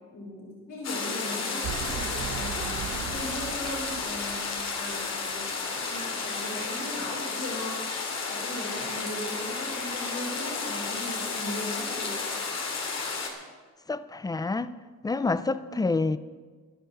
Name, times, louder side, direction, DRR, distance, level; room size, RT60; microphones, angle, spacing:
voice 1, 0.1-4.4 4.7-7.8 8.3-12.2 15.6-15.8, left 1 dB, 85° left, 5.5 m, -38 dB
sound 1, 0.8-13.3, left 4 dB, 60° left, 2.5 m, -32 dB
sound 2, 1.5-5.4, right 10 dB, 65° right, 0.8 m, -38 dB
voice 2, 13.9-14.7 15.0-16.2, left 3 dB, 15° left, 0.5 m, -27 dB
12.0 x 11.5 x 6.4 m
cardioid pair, 90°, 30 cm